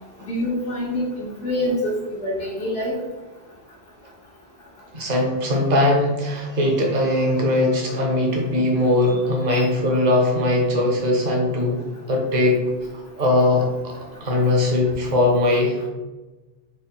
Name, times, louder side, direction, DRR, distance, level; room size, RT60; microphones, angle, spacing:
voice 1, 0.2-2.9 9.5-9.7, left 1 dB, 80° left, -6 dB, 1.1 m, -26 dB
voice 2, 4.9-12.6 13.2-15.9, left 1 dB, 45° right, 0 dB, 0.9 m, -20 dB
3.6 x 2.2 x 4.2 m, 1.1 s
omnidirectional pair, 1.0 m